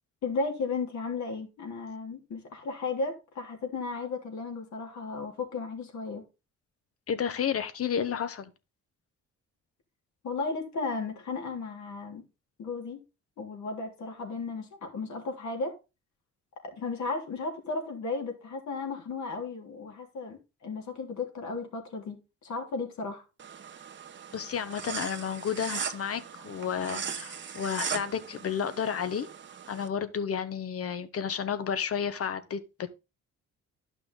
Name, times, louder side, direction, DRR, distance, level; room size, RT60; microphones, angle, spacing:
voice 1, 0.2-6.2 10.2-12.2 12.6-13.0 13.4-15.7 16.7-23.2, left 4 dB, 70° left, 3.2 m, -34 dB
voice 2, 7.1-8.5 24.3-29.3 29.7-32.9, left 7 dB, 50° left, 1.2 m, -31 dB
sound 1, 23.4-29.9, right 7 dB, 40° right, 1.1 m, -39 dB
11.5 x 5.8 x 3.9 m
cardioid pair, 90°, 30 cm